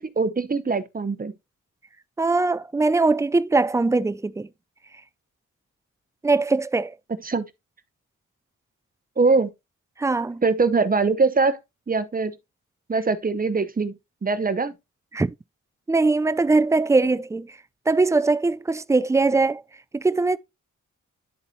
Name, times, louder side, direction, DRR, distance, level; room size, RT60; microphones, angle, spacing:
voice 1, 0.0-1.3 7.2-7.5 9.2-9.5 10.4-11.6 11.9-12.3 12.9-13.9 14.2-14.7, right 4 dB, 30° right, 0.8 m, -22 dB
voice 2, 2.2-4.5 6.2-6.9 10.0-10.4 15.1-15.3 15.9-17.5 17.9-19.6 19.9-20.4, right 3 dB, 10° right, 0.3 m, -21 dB
11.5 x 4.0 x 2.7 m
cardioid pair, 70°, 30 cm